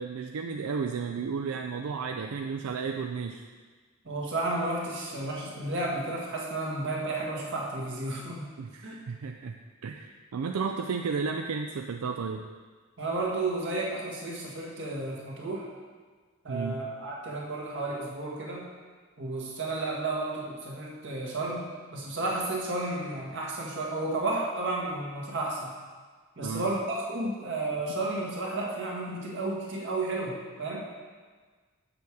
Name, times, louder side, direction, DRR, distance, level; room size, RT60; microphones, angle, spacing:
voice 1, 0.0-3.4 8.6-9.6 9.8-12.5 16.5-16.8 26.4-26.7, right 5 dB, 85° right, 4 dB, 0.4 m, -33 dB
voice 2, 4.0-8.5 8.8-9.0 13.0-15.7 16.4-18.7 19.2-25.7 26.4-30.9, right 2 dB, 60° right, -2 dB, 1.6 m, -32 dB
7.0 x 6.8 x 4.7 m, 1.5 s
head